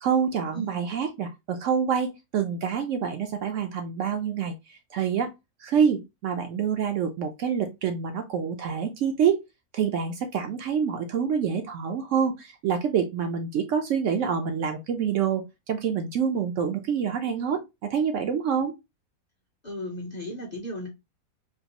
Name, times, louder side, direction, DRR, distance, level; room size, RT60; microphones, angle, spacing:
voice 1, 0.0-5.3 5.6-9.4 9.7-18.7, right 7 dB, 65° right, 0.8 m, -27 dB
voice 2, 19.6-20.9, equal, 40° left, 0.7 m, -35 dB
3.7 x 2.4 x 2.8 m
omnidirectional pair, 1.6 m